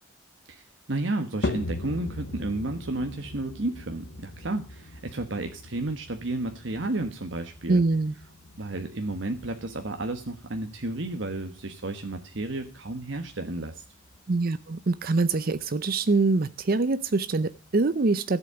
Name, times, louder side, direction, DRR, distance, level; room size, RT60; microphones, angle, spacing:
voice 1, 0.5-7.8 8.6-13.8, right 2 dB, 65° right, 1.3 m, -32 dB
sound 1, 1.4-17.9, left 2 dB, 55° left, 1.0 m, -41 dB
voice 2, 7.7-8.1 14.3-18.4, right 3 dB, 50° right, 0.6 m, -24 dB
14.0 x 8.2 x 6.9 m
head